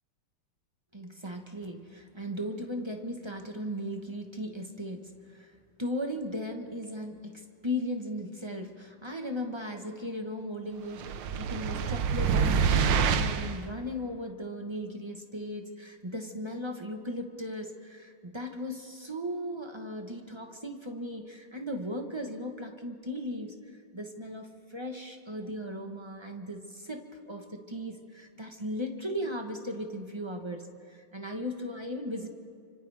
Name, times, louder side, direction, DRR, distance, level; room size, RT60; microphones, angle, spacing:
voice 1, 0.9-23.5 23.9-32.3, equal, 20° right, 4 dB, 0.9 m, -37 dB
sound 1, 11.0-13.6, right 6 dB, 70° right, 1.4 m, -26 dB
29.5 x 25.5 x 3.5 m, 2.3 s
omnidirectional pair, 2.3 m